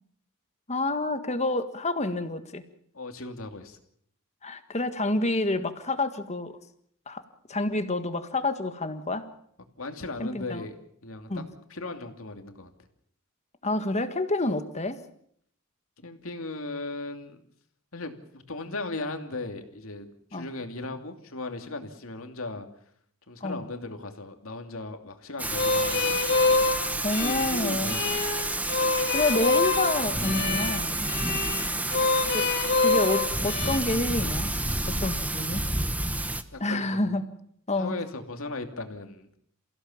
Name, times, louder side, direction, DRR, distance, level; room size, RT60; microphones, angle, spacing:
voice 1, 0.7-2.6 4.4-6.5 7.1-7.2 7.5-9.3 10.2-10.7 11.3-11.5 13.6-15.0 20.3-20.5 23.4-23.6 27.0-28.0 29.1-31.0 32.3-32.5 32.8-34.5 34.9-35.7 36.6-37.2 37.7-38.0, left 2 dB, 30° left, 9 dB, 1.8 m, -28 dB
voice 2, 2.9-3.8 9.8-10.7 11.0-11.4 11.7-12.7 16.0-17.4 17.9-22.7 23.3-26.2 27.2-28.2 36.5-37.1 37.7-39.3, left 2 dB, 75° left, 5 dB, 2.8 m, -37 dB
Thunder / Rain, 25.4-36.4, right 2 dB, 5° right, 1.1 m, -30 dB
sound 1, 25.5-33.8, left 3 dB, 55° left, 3.0 m, -26 dB
28.5 x 16.0 x 7.3 m, 0.68 s
head